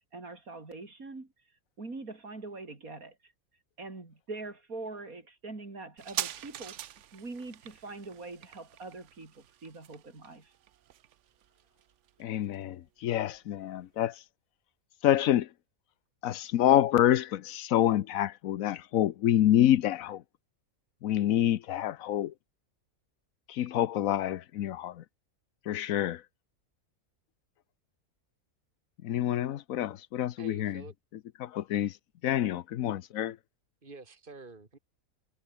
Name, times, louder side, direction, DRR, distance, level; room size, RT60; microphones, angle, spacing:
voice 1, 0.1-1.3 1.8-3.3 3.8-6.8 7.1-10.5, right 3 dB, 80° right, 4.4 m, -43 dB
sound 1, 6.0-13.1 13.3-13.4, right 11 dB, 65° right, 0.9 m, -43 dB
voice 2, 12.2-14.2 15.0-15.5 16.2-20.2 21.0-22.3 23.5-25.0 25.7-26.2 29.0-30.8 31.4-31.9 32.2-33.4, left 12 dB, 75° left, 1.1 m, -27 dB
voice 3, 30.4-30.9 33.8-34.8, right 3 dB, 35° right, 2.9 m, -48 dB
omnidirectional pair, 1.5 m